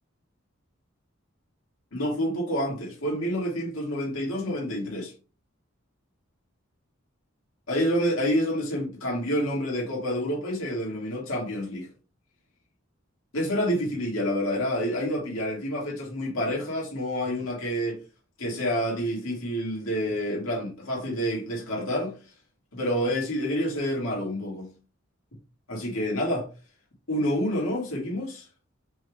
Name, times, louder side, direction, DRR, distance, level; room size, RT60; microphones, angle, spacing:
voice 1, 1.9-5.1 7.7-11.9 13.3-18.0 18.4-22.1 22.7-24.7 25.7-26.5 27.1-28.5, equal, 80° left, 1.9 m, -28 dB
5.2 x 3.4 x 2.3 m
head